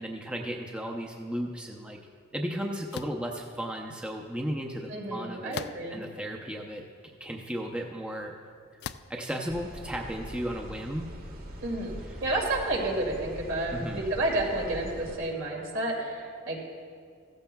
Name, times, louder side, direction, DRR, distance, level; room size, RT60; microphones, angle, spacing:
voice 1, 0.0-2.0 2.3-5.6 5.9-8.3 9.1-11.1 12.1-12.2 13.7-14.1, equal, 5° right, 0 dB, 0.6 m, -35 dB
sound 1, 2.9-3.2 5.5-6.1 6.8-6.9 8.8-9.2, left 8 dB, 55° left, 0.3 m, -39 dB
voice 2, 4.9-6.0 11.6-11.9 12.2-16.6, right 2 dB, 65° right, -2 dB, 2.6 m, -30 dB
sound 2, 9.5-15.2, equal, 45° right, 1.5 m, -42 dB
16.0 x 14.5 x 2.3 m, 2.2 s
head